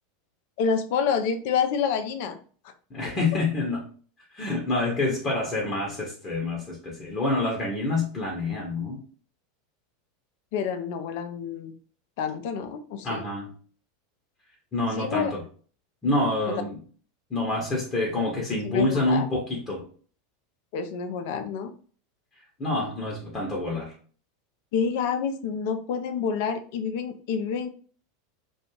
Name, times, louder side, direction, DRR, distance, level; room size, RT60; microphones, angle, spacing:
voice 1, 0.6-2.4 10.5-11.7 12.2-13.2 15.0-15.3 16.5-16.6 18.6-19.3 20.7-21.7 24.7-27.7, left 6 dB, 55° left, 8 dB, 0.4 m, -28 dB
voice 2, 2.9-3.8 4.3-9.0 13.0-13.5 14.7-15.4 16.0-16.8 17.3-19.9 22.6-23.9, left 2 dB, 25° left, -3 dB, 0.8 m, -27 dB
2.4 x 2.3 x 3.1 m, 0.42 s
figure-of-eight pair, 85°, 0 cm